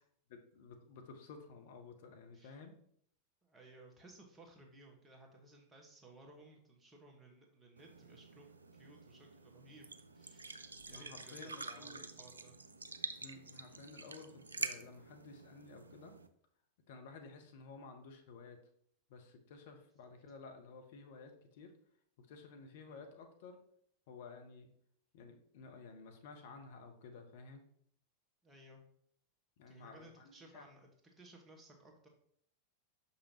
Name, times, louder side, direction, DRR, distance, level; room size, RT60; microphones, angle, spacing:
voice 1, 0.3-2.7 10.9-12.0 13.2-16.2 16.9-18.6 19.1-21.8 22.2-23.6 24.1-24.7 25.1-27.6 29.6-30.6, left 4 dB, 55° left, 5 dB, 0.9 m, -53 dB
voice 2, 2.3-2.7 3.4-10.6 10.8-12.5 22.8-23.0 28.4-28.8 29.7-32.1, right 2 dB, 15° right, 2 dB, 1.4 m, -59 dB
sound 1, 7.8-16.3, right 3 dB, 75° right, 0.4 m, -47 dB
6.5 x 5.6 x 2.9 m, 0.65 s
figure-of-eight pair, 90°, 0 cm